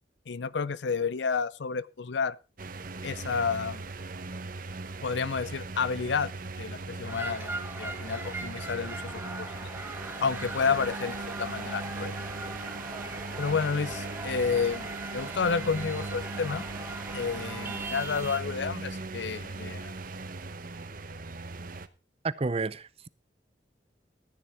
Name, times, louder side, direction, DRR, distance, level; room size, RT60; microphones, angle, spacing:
voice 1, 0.3-2.4 3.0-3.8 5.0-6.3 6.6-9.5 10.2-12.1 13.4-16.6 17.1-19.9, left 5 dB, 75° left, 0.6 m, -30 dB
sound 1, 2.6-21.9, right 3 dB, 50° right, 1.0 m, -39 dB
sound 2, 7.1-18.4, right 2 dB, 10° right, 1.9 m, -40 dB
voice 2, 22.2-23.1, right 3 dB, 35° right, 0.6 m, -31 dB
14.0 x 9.5 x 4.5 m
head